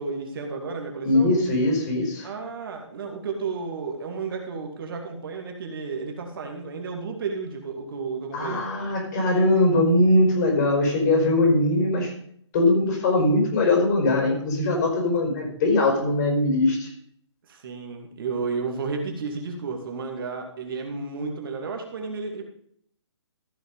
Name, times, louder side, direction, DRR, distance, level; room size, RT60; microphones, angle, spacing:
voice 1, 0.0-1.4 2.2-8.6 17.5-22.4, right 4 dB, 50° right, 3 dB, 2.5 m, -32 dB
voice 2, 1.0-2.3 8.3-12.1 12.5-16.9, left 2 dB, 40° left, 1 dB, 5.2 m, -21 dB
14.5 x 6.5 x 5.4 m, 0.64 s
figure-of-eight pair, 140°, 15 cm